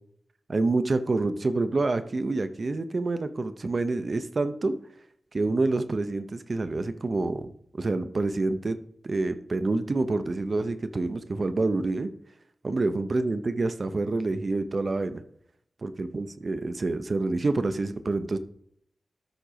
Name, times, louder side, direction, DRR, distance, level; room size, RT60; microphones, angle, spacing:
voice 1, 0.5-4.7 5.3-8.8 9.0-12.1 12.6-15.2 15.8-18.4, right 3 dB, 45° right, 11 dB, 0.8 m, -27 dB
13.0 x 4.5 x 5.0 m, 0.68 s
wide cardioid pair, 130°, 0 cm